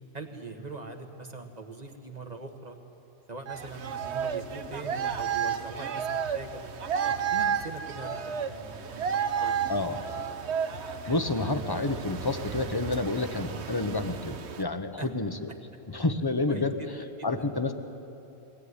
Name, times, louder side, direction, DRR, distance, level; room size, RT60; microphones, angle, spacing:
voice 1, 0.1-2.8 3.3-6.6 7.0-9.5 15.0-15.1 16.5-17.3, right 3 dB, 40° right, 5 dB, 1.8 m, -42 dB
sound 1, 3.5-14.6, right 7 dB, 75° right, 1.2 m, -32 dB
voice 2, 11.1-15.5 15.9-16.8 17.2-17.7, left 2 dB, 20° left, 8 dB, 1.1 m, -29 dB
22.5 x 17.5 x 9.7 m, 2.9 s
omnidirectional pair, 1.1 m